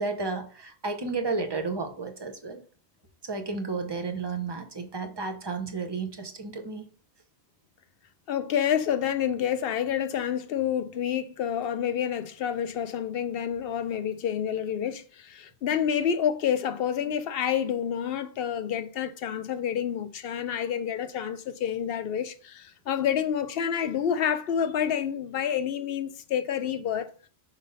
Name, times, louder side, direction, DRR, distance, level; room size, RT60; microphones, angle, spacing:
voice 1, 0.0-2.6 3.3-6.9, right 4 dB, 25° right, 0.7 m, -32 dB
voice 2, 8.3-27.1, left 9 dB, 60° left, 0.8 m, -28 dB
5.0 x 3.6 x 5.4 m
omnidirectional pair, 1.2 m